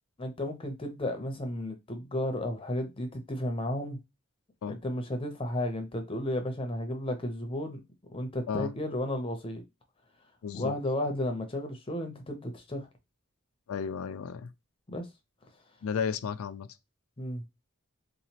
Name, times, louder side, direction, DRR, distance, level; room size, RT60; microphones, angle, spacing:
voice 1, 0.2-4.0 4.7-7.8 8.1-9.6 10.5-12.9 14.9-15.1 17.2-17.4, left 1 dB, 25° left, 0.6 m, -33 dB
voice 2, 10.4-10.7 13.7-14.5 15.8-16.7, left 6 dB, 80° left, 0.4 m, -33 dB
3.8 x 2.9 x 2.8 m
head